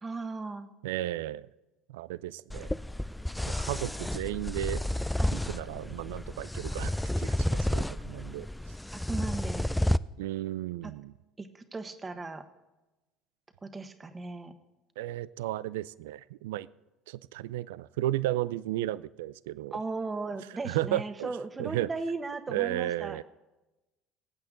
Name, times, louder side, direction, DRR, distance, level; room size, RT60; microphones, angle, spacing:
voice 1, 0.0-0.7 5.2-5.4 8.9-9.7 10.8-10.9 11.4-12.4 13.6-14.5 19.7-23.2, right 3 dB, 25° right, 9 dB, 1.4 m, -37 dB
voice 2, 0.8-1.5 1.9-2.7 3.5-4.8 5.3-8.5 10.2-11.1 15.0-16.7 17.1-19.7 20.6-21.3 21.6-21.9 22.5-23.2, right 15 dB, 80° right, 19 dB, 0.3 m, -34 dB
sound 1, 2.5-10.0, left 1 dB, 5° left, 0.3 m, -31 dB
19.0 x 8.6 x 3.9 m, 1.0 s
hypercardioid pair, 75°, 0 cm